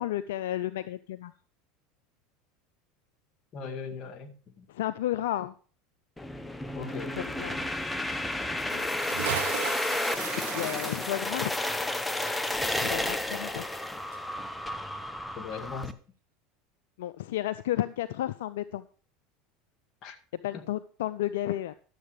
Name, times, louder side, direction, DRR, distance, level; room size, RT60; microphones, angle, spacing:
voice 1, 0.0-1.3 4.7-5.5 7.1-7.7 8.7-8.9 10.4-11.5 12.8-13.6 17.0-18.8 20.4-21.7, left 13 dB, 80° left, 0.5 m, -32 dB
voice 2, 3.5-4.7 6.7-7.2 15.4-16.0 20.0-20.2 20.5-20.6, left 6 dB, 50° left, 2.0 m, -39 dB
sound 1, 6.2-15.9, left 1 dB, 10° left, 0.9 m, -32 dB
Bathtub (filling or washing) / Splash splatter, 8.9-13.9 14.1-14.2, right 11 dB, 80° right, 1.1 m, -38 dB
12.0 x 7.6 x 4.9 m
hypercardioid pair, 95°, 0 cm